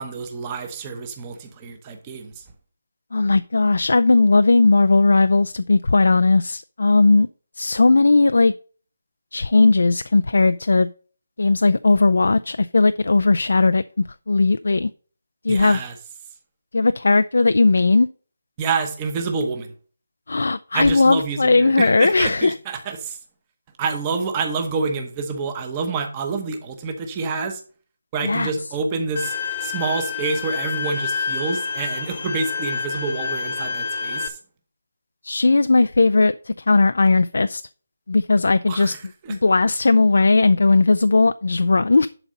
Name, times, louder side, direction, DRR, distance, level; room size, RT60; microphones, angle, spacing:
voice 1, 0.0-2.4 15.5-15.9 18.6-19.7 20.7-23.2 23.8-27.6 28.1-29.3 29.6-34.4 38.7-39.0 39.2-39.4, right 4 dB, 10° right, 5 dB, 0.9 m, -27 dB
voice 2, 3.1-7.3 7.6-8.5 9.3-10.9 11.4-13.8 14.3-14.9 15.4-15.8 16.7-18.1 20.3-22.5 28.2-28.5 35.2-37.6 38.1-38.9 39.3-42.1, left 3 dB, 70° left, 12 dB, 0.4 m, -17 dB
Bowed string instrument, 29.2-34.3, left 5 dB, 35° left, 0.9 m, -28 dB
11.0 x 4.0 x 5.3 m, 0.41 s
hypercardioid pair, 180°, 0 cm